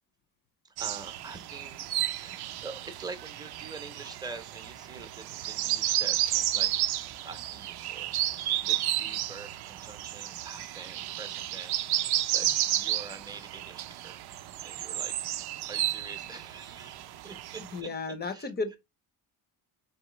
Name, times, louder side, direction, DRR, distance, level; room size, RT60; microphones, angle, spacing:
voice 1, 0.6-6.7 7.2-14.2 14.6-17.9 18.2-18.5, right 4 dB, 10° right, 0.8 m, -45 dB
sound 1, 0.8-17.8, right 13 dB, 65° right, 0.6 m, -32 dB
voice 2, 17.7-18.8, left 3 dB, 25° left, 0.7 m, -34 dB
4.9 x 3.1 x 3.0 m
cardioid pair, 130°, 42 cm